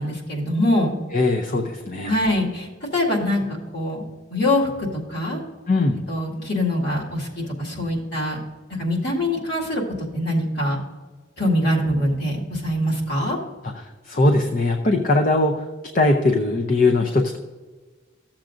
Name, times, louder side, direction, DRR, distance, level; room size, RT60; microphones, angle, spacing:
voice 1, 0.0-1.0 2.0-4.0 4.3-5.4 6.1-8.4 8.7-9.8 10.1-10.8 11.4-13.4, left 1 dB, 60° left, -3 dB, 2.1 m, -23 dB
voice 2, 1.1-2.1 5.7-6.1 14.0-15.6 15.9-17.4, left 2 dB, 45° left, 3 dB, 0.6 m, -20 dB
14.5 x 7.3 x 2.5 m, 1.3 s
head